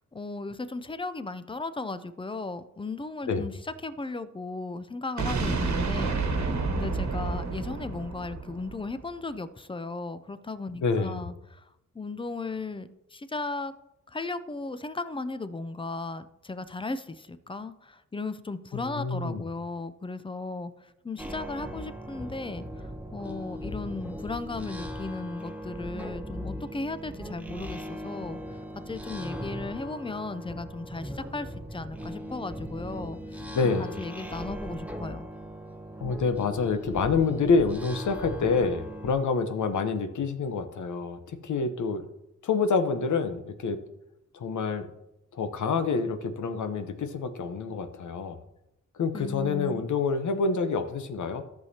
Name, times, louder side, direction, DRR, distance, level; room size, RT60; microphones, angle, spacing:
voice 1, 0.1-11.6 11.9-13.7 14.1-20.7 21.0-22.7 23.1-28.6 28.9-35.3 49.1-49.8, left 3 dB, 15° left, 13 dB, 0.4 m, -36 dB
sound 1, 5.2-9.1, right 3 dB, 65° right, 1.4 m, -29 dB
voice 2, 10.8-11.3 18.7-19.5 33.5-33.9 36.0-42.1 42.4-43.8 44.3-44.9 45.3-48.4 49.0-51.4, left 4 dB, 70° left, 8 dB, 0.9 m, -27 dB
sound 2, 21.2-39.1, equal, 5° right, 0.8 m, -39 dB
14.0 x 6.5 x 2.8 m, 0.87 s
wide cardioid pair, 105°, 31 cm